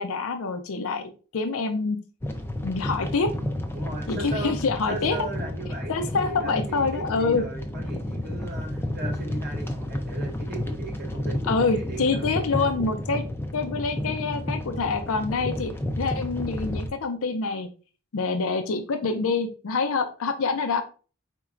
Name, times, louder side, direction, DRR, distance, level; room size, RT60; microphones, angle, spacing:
voice 1, 0.0-2.0 2.6-3.3 4.1-5.2 5.9-7.4 11.5-13.2 13.5-17.7 18.1-20.8, left 4 dB, 65° left, 8 dB, 0.5 m, -26 dB
sound 1, 2.2-16.9, left 1 dB, 10° left, 0.4 m, -31 dB
voice 2, 3.7-4.6 4.9-12.7, right 2 dB, 45° right, 0 dB, 0.9 m, -37 dB
4.5 x 4.1 x 2.4 m, 0.36 s
head